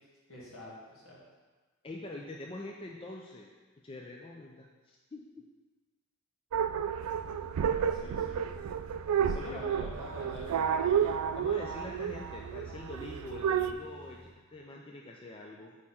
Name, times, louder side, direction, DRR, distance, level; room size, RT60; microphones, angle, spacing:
voice 1, 0.3-1.2 7.6-8.4 9.2-10.5 10.9-11.2, left 1 dB, 65° left, -6 dB, 2.1 m, -46 dB
voice 2, 1.8-3.5 3.8-5.5 9.3-9.6 11.4-15.8, left 2 dB, 25° left, -1 dB, 0.4 m, -45 dB
sound 1, 6.5-13.7, right 8 dB, 85° right, 0.3 m, -31 dB
sound 2, 7.0-14.3, equal, 45° left, 1.0 m, -53 dB
6.6 x 4.8 x 4.2 m, 1.3 s
head